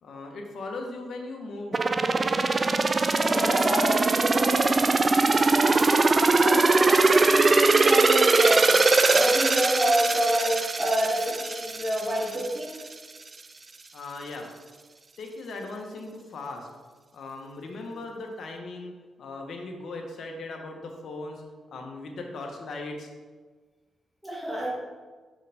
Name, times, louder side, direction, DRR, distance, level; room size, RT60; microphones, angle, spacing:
voice 1, 0.0-1.8 13.9-14.4 15.2-16.7 17.1-21.4 21.7-23.1, left 2 dB, 65° left, 2 dB, 1.1 m, -38 dB
sound 1, 1.7-12.5 12.9-13.0, right 3 dB, 35° right, 0.4 m, -21 dB
voice 2, 3.2-4.6 5.3-8.8 9.1-12.8 24.2-24.7, equal, ahead, -6 dB, 2.1 m, -28 dB
6.5 x 5.3 x 3.5 m, 1.4 s
cardioid pair, 80°, 0 cm